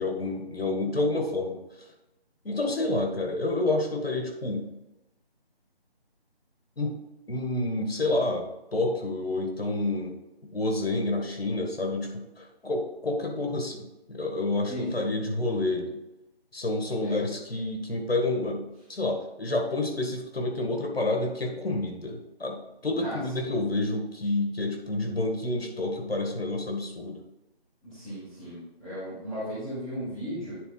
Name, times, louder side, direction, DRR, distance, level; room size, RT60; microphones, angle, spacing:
voice 1, 0.0-1.6 2.4-4.7 6.8-7.0 7.3-8.5 8.7-10.1 10.5-16.0 16.5-18.6 18.9-27.2, left 2 dB, 70° left, 2 dB, 1.7 m, -29 dB
voice 2, 14.6-15.1 17.0-17.3 23.0-23.5 27.8-30.6, equal, ahead, -13 dB, 1.1 m, -36 dB
9.8 x 4.0 x 3.9 m, 0.96 s
figure-of-eight pair, 160°, 31 cm